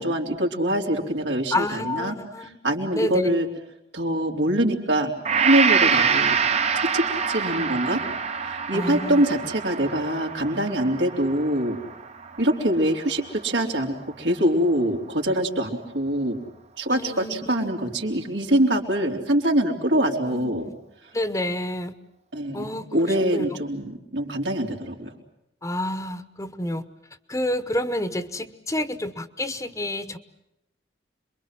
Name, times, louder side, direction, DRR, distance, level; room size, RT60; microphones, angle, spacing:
voice 1, 0.0-3.5 3.9-6.4 6.8-8.0 8.4-11.8 12.4-16.4 16.8-20.6 22.3-25.1, right 1 dB, 90° right, 2 dB, 3.9 m, -24 dB
voice 2, 1.5-3.3 8.7-9.2 16.9-17.7 20.3-20.7 21.1-21.9 22.5-23.5 25.6-26.8 27.3-30.2, left 1 dB, 20° left, 12 dB, 1.0 m, -29 dB
Gong, 5.2-13.3, right 6 dB, 40° right, 1.0 m, -26 dB
27.0 x 23.0 x 7.6 m, 0.82 s
head